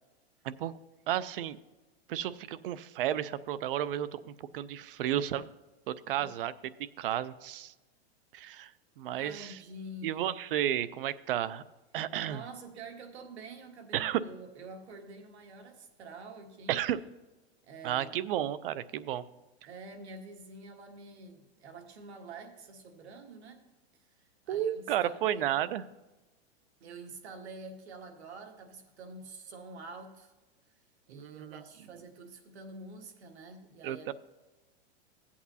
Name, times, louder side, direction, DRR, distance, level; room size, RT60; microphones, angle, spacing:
voice 1, 0.4-0.8 1.1-1.6 2.1-5.5 5.9-6.5 7.0-7.7 8.3-8.7 9.0-9.6 10.0-11.6 11.9-12.4 13.9-14.2 16.7-17.0 17.8-19.2 24.5-25.8 31.1-31.6 33.8-34.1, right 11 dB, 55° right, 16 dB, 0.5 m, -32 dB
voice 2, 9.2-10.3 12.3-16.8 17.6-18.1 19.7-23.6 24.1-25.6 26.8-30.3 31.1-34.1, right 3 dB, 85° right, 5 dB, 1.5 m, -47 dB
15.5 x 8.4 x 2.7 m, 1.1 s
supercardioid pair, 165°, 32 cm